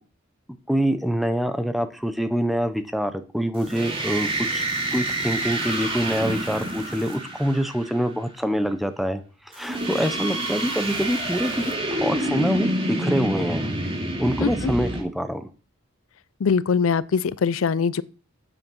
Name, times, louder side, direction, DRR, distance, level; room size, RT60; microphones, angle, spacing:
voice 1, 0.7-4.6 4.9-9.2 9.5-11.6 11.9-13.7 14.2-15.5, equal, ahead, 0.9 m, -25 dB
sound 1, 3.6-8.0 9.5-15.0, right 1 dB, 30° right, 2.5 m, -28 dB
voice 2, 14.4-14.7 16.4-18.0, left 5 dB, 85° left, 0.5 m, -22 dB
8.4 x 7.6 x 6.3 m
head